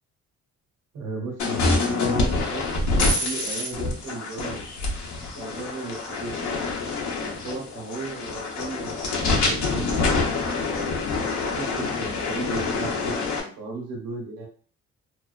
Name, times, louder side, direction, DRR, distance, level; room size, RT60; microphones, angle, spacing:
voice 1, 0.9-2.8 3.2-4.9 5.4-6.6 7.1-9.9 10.6-14.5, right 3 dB, 90° right, 0 dB, 1.0 m, -36 dB
sound 1, 1.4-13.4, left 3 dB, 70° left, 0.7 m, -26 dB
2.4 x 2.3 x 2.3 m, 0.41 s
cardioid pair, 90°, 30 cm